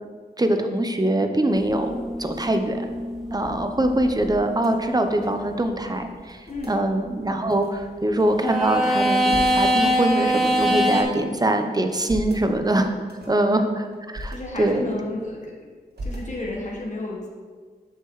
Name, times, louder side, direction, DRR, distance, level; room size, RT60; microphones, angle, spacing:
voice 1, 0.4-2.8 3.3-6.4 6.7-12.9 13.3-14.9, right 1 dB, 20° right, 6 dB, 0.8 m, -23 dB
sound 1, 1.8-5.3 8.4-11.0, equal, ahead, 2.3 m, -24 dB
sound 2, 2.0-5.6 5.8-5.9 6.2-6.8 7.5-8.5 8.9-9.7 10.3-11.2 11.7-12.5 13.0-13.4 13.9-14.4 14.8-15.5 15.9-16.7, equal, 65° right, 1.5 m, -39 dB
voice 2, 6.5-6.8 13.2-13.5 14.3-15.5 16.0-17.3, left 2 dB, 45° left, -3 dB, 1.4 m, -32 dB
8.0 x 6.6 x 3.2 m, 1.6 s
cardioid pair, 65°, 18 cm